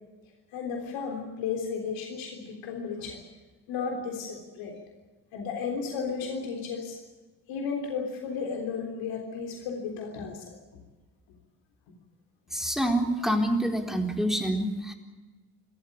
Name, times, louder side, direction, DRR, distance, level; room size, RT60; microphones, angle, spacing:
voice 1, 0.5-3.2 3.7-4.8 5.3-7.0 7.5-10.5, left 5 dB, 70° left, 2 dB, 3.6 m, -34 dB
voice 2, 12.5-14.9, equal, ahead, 3 dB, 4.0 m, -27 dB
28.5 x 14.0 x 8.8 m, 1.2 s
hypercardioid pair, 50°, 47 cm